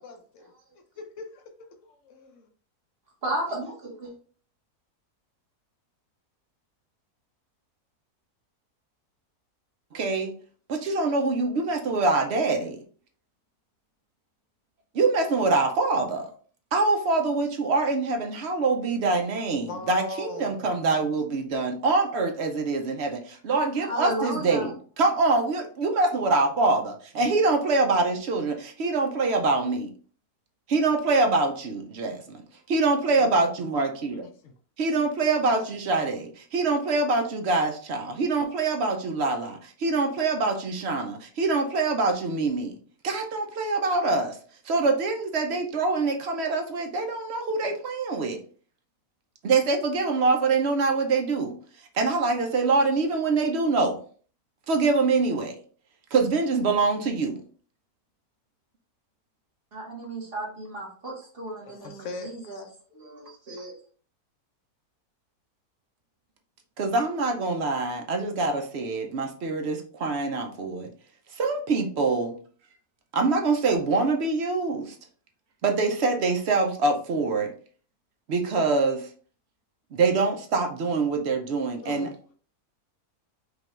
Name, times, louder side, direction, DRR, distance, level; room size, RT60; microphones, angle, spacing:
voice 1, 0.0-1.5 1.8-2.5 19.6-20.7 33.2-33.6 34.4-34.5 61.6-62.8 81.8-82.3, left 3 dB, 65° left, 5 dB, 0.9 m, -41 dB
voice 2, 3.2-4.2 23.8-24.7 59.7-62.6 62.9-63.8, right 1 dB, 40° right, -2 dB, 1.3 m, -34 dB
voice 3, 9.9-10.3 10.7-12.8 14.9-16.3 16.7-29.9 30.7-32.4 32.7-34.2 34.8-42.8 43.0-44.4 44.6-48.4 49.4-51.5 51.9-54.0 54.7-55.6 56.1-57.4 66.8-70.9 71.3-72.4 73.1-75.0 75.6-77.5 78.3-79.1 79.9-82.1, right 3 dB, 60° right, 4 dB, 0.7 m, -25 dB
5.1 x 2.3 x 3.1 m, 0.44 s
omnidirectional pair, 1.6 m